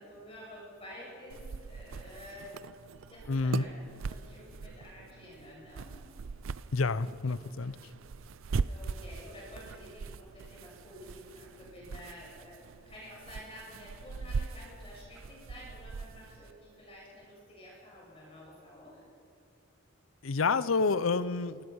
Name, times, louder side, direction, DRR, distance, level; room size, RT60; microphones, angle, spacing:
voice 1, 0.0-2.6 3.1-6.0 8.7-19.0, left 1 dB, 30° left, -5 dB, 7.0 m, -50 dB
sound 1, 1.3-16.5, right 4 dB, 75° right, 0.5 m, -41 dB
voice 2, 3.3-3.6 6.7-7.8 20.2-21.7, left 4 dB, 80° left, 16 dB, 0.7 m, -29 dB
27.0 x 19.0 x 5.5 m, 2.4 s
head